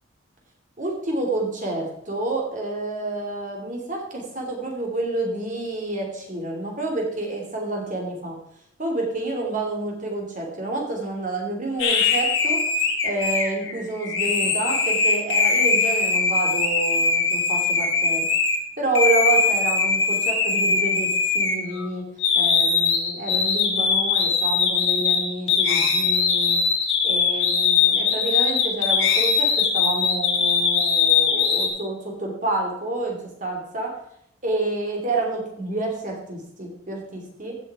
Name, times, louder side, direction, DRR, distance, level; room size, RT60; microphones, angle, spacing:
voice 1, 0.8-8.3 8.8-18.2 18.8-22.0 22.3-26.6 27.0-33.9 34.4-37.6, right 2 dB, 40° right, 1 dB, 2.9 m, -29 dB
sound 1, 11.8-18.6 18.9-21.9 22.2-31.7, left 5 dB, 80° left, 2.1 m, -21 dB
16.0 x 6.3 x 4.9 m, 0.74 s
head